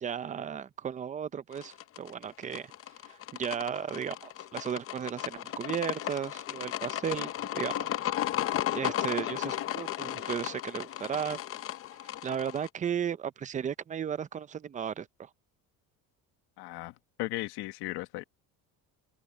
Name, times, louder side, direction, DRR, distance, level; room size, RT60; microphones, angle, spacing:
voice 1, 0.0-2.7 3.0-7.9 8.7-11.4 12.2-15.3, right 8 dB, 20° right, 0.5 m, -35 dB
sound 1, 1.5-12.7, left 13 dB, 35° left, 0.6 m, -35 dB
voice 2, 16.6-18.2, left 19 dB, 85° left, 1.4 m, -36 dB
cardioid pair, 160°, 38 cm